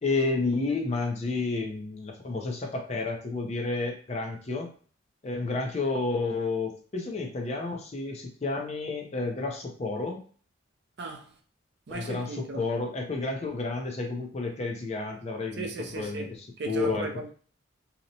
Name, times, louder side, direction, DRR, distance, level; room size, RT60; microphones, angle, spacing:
voice 1, 0.0-4.7 5.2-10.2 11.9-16.3 16.7-17.1, left 3 dB, 30° left, 0.4 m, -31 dB
voice 2, 11.0-11.3 11.9-12.6 15.6-16.3 16.6-17.3, right 2 dB, 55° right, 0.4 m, -35 dB
2.8 x 2.0 x 2.6 m
head